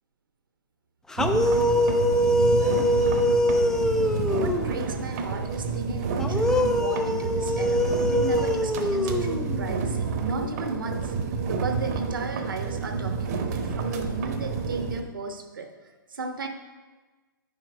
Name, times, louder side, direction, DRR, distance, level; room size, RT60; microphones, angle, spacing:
sound 1, 1.1-4.9 6.2-9.8, left 1 dB, 5° left, 0.3 m, -24 dB
sound 2, 1.2-15.0, right 5 dB, 45° right, 0.9 m, -29 dB
voice 1, 4.4-11.1 11.5-15.7 16.1-16.5, right 3 dB, 65° right, 5 dB, 1.0 m, -34 dB
9.6 x 4.6 x 4.9 m, 1.3 s
figure-of-eight pair, 115°, 12 cm